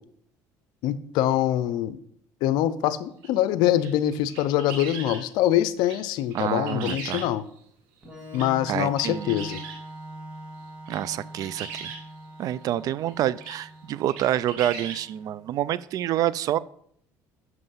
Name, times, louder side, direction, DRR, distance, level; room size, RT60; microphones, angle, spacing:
voice 1, 0.8-2.0 2.4-7.4 8.3-9.6, left 12 dB, 75° left, 0.6 m, -24 dB
sound 1, 3.2-3.3 3.8-5.2 5.8-6.0 6.3-7.6 8.3-8.5 9.0-9.8 10.6-11.0 11.3-12.0 13.1-13.2 13.4-13.6 14.1-15.0, right 5 dB, 85° right, 2.1 m, -38 dB
voice 2, 6.3-7.3 8.7-9.4 10.9-11.9 12.4-16.6, right 12 dB, 55° right, 0.4 m, -27 dB
Organ, 8.0-15.6, right 1 dB, 15° right, 2.6 m, -43 dB
7.8 x 6.1 x 5.6 m
supercardioid pair, 100°, 7 cm